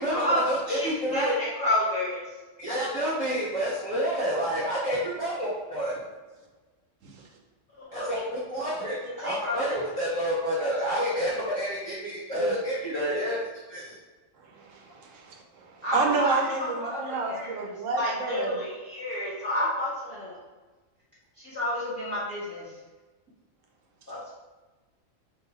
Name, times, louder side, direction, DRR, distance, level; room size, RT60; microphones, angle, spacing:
voice 1, 0.0-1.3 2.6-6.0 7.9-13.9, equal, 15° right, -11 dB, 1.3 m, -29 dB
voice 2, 0.7-2.2 7.9-8.1 9.0-9.8 10.8-11.1 15.8-16.4 16.8-17.7 18.0-20.4 21.4-22.6 24.1-24.3, left 1 dB, 10° left, -11 dB, 0.9 m, -30 dB
voice 3, 14.4-18.6, right 4 dB, 75° right, 1 dB, 1.1 m, -30 dB
3.8 x 2.6 x 4.3 m, 1.3 s
omnidirectional pair, 1.3 m